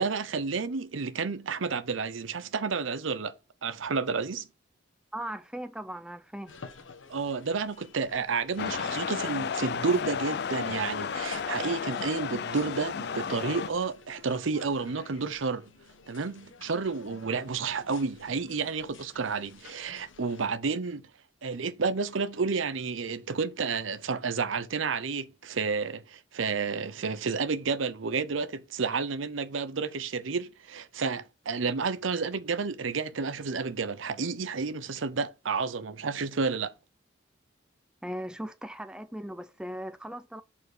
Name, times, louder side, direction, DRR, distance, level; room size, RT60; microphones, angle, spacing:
voice 1, 0.0-3.3 3.6-4.5 7.1-15.7 16.1-21.1 21.4-36.7, right 4 dB, 90° right, 0.7 m, -31 dB
voice 2, 5.1-6.5 38.0-40.4, equal, 5° right, 0.5 m, -38 dB
sound 1, 6.5-20.5, left 4 dB, 90° left, 1.1 m, -48 dB
sound 2, 8.6-13.7, left 6 dB, 55° left, 0.4 m, -33 dB
6.7 x 4.2 x 4.9 m
head